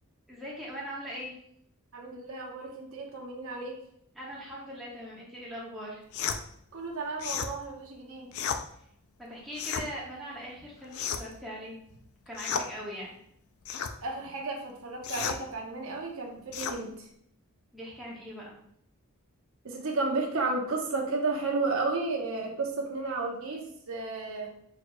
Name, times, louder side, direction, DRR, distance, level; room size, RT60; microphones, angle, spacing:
voice 1, 0.3-1.3 4.1-6.0 9.2-11.8 12.3-13.2 17.7-18.6, equal, ahead, -6 dB, 1.2 m, -40 dB
voice 2, 1.9-3.8 6.7-8.3 14.0-17.1 19.6-24.5, right 3 dB, 65° right, 1 dB, 0.8 m, -33 dB
sound 1, 6.1-6.4 7.2-7.5 8.3-8.6 9.5-9.9 10.9-11.4 12.3-12.7 13.6-13.9 15.0-15.4 16.5-16.8, left 7 dB, 65° left, 0.4 m, -32 dB
6.1 x 3.0 x 2.2 m, 0.69 s
head